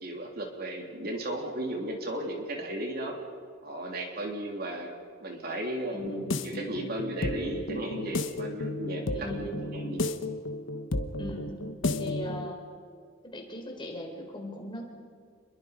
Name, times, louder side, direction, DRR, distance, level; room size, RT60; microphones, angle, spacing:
voice 1, 0.0-3.2 3.6-4.9 5.2-6.0 6.4-10.0, right 1 dB, 50° right, 1 dB, 3.2 m, -35 dB
voice 2, 5.9-6.3 9.1-9.4 11.2-11.6 12.0-12.6 13.2-14.9, left 1 dB, 25° left, 1 dB, 4.1 m, -39 dB
sound 1, 6.0-12.5, left 2 dB, 70° left, 1.2 m, -33 dB
28.5 x 22.0 x 5.2 m, 2.2 s
head